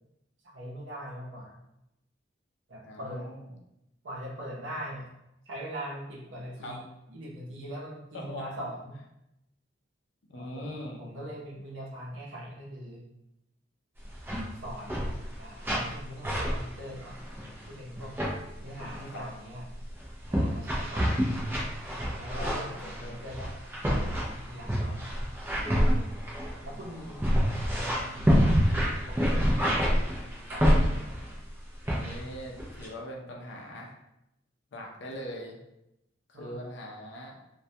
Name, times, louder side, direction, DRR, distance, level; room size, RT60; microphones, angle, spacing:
voice 1, 0.5-1.6 2.7-3.3 4.0-5.1 5.5-6.8 7.1-8.9 10.3-10.7 11.0-13.0 14.6-17.2 17.7-18.1 18.6-19.6 20.3-21.1 22.2-23.6 23.9-25.1 25.9-26.3 26.6-28.4 29.1-31.2 36.3-36.6, equal, 75° right, -3 dB, 0.7 m, -41 dB
voice 2, 2.8-3.5 6.6-6.8 8.1-8.5 10.2-11.0 18.8-19.3 22.7-23.1 26.6-27.5 31.9-34.0 34.7-35.6 36.3-37.4, equal, 60° left, 0 dB, 0.5 m, -42 dB
sound 1, 14.0-14.4 14.7-15.4 15.6-16.0 16.2-17.6 18.0-18.3 18.8-19.1 19.7-31.3 31.9-32.3 32.6-32.9, equal, 10° right, 0.4 m, -27 dB
2.2 x 2.2 x 2.7 m, 0.86 s
head